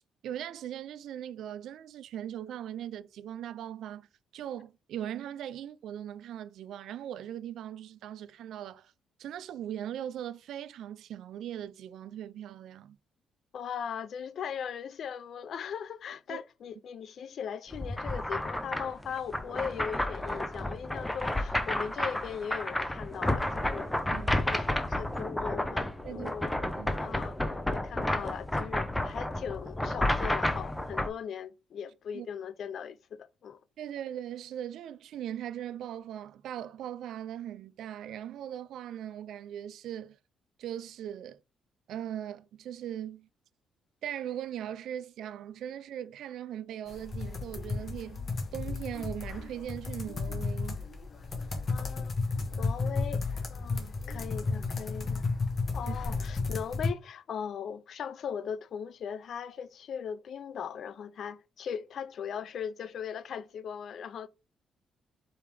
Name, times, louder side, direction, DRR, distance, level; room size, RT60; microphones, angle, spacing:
voice 1, 0.2-4.1 4.3-8.9 9.2-13.0 16.3-16.4 24.1-24.3 26.0-26.3 26.8-27.0 32.1-32.3 33.8-40.2 40.6-41.4 41.9-43.3 44.0-48.2 48.5-50.9 55.9-56.0, right 10 dB, 75° right, 0.4 m, -39 dB
voice 2, 13.5-26.5 27.0-33.6 51.7-52.3 52.6-53.2 53.5-55.2 55.7-64.3, left 7 dB, 60° left, 0.4 m, -39 dB
sound 1, 17.7-31.1, left 1 dB, 10° left, 0.7 m, -31 dB
sound 2, 46.9-56.9, left 3 dB, 40° left, 1.2 m, -33 dB
4.5 x 3.4 x 3.3 m
cardioid pair, 90°, 0 cm